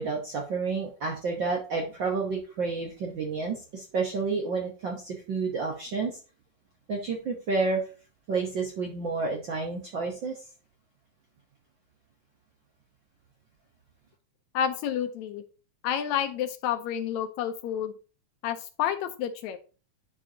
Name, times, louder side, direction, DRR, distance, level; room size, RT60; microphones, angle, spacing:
voice 1, 0.0-6.2 6.9-7.8 8.3-10.4, right 4 dB, 60° right, 0 dB, 1.2 m, -30 dB
voice 2, 14.5-15.4 15.8-17.9 18.4-19.6, left 9 dB, 75° left, 9 dB, 1.8 m, -29 dB
10.5 x 5.1 x 2.8 m, 0.35 s
omnidirectional pair, 3.5 m